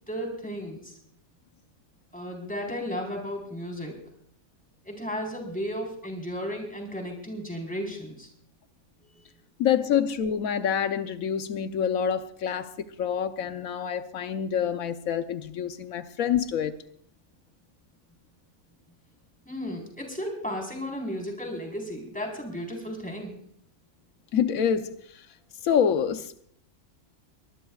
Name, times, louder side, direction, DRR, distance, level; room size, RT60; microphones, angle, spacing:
voice 1, 0.1-1.0 2.1-4.0 4.9-8.3 9.0-9.1 19.5-23.4, equal, 5° left, 4.1 m, -34 dB
voice 2, 9.6-16.7 24.3-25.3 25.6-26.4, left 8 dB, 90° left, 1.2 m, -27 dB
23.5 x 20.0 x 2.4 m
omnidirectional pair, 1.4 m